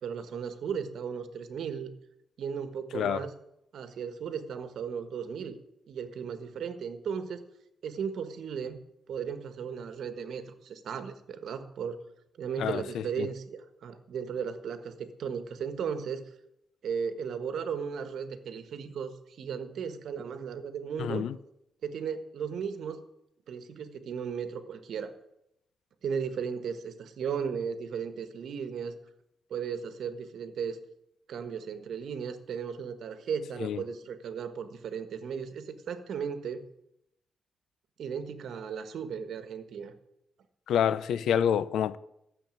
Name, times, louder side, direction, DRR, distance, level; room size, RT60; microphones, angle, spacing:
voice 1, 0.0-1.9 2.4-3.3 3.7-5.6 5.9-7.4 7.8-8.8 9.1-12.0 12.4-16.2 16.8-21.3 21.8-23.0 23.5-25.1 26.0-29.0 29.5-30.8 31.3-36.6 38.0-39.9, right 7 dB, 70° right, 1.5 m, -36 dB
voice 2, 2.9-3.2 12.6-13.3 21.0-21.4 33.6-33.8 40.7-42.0, left 9 dB, 85° left, 0.6 m, -28 dB
14.0 x 7.1 x 9.1 m
cardioid pair, 110°, 0 cm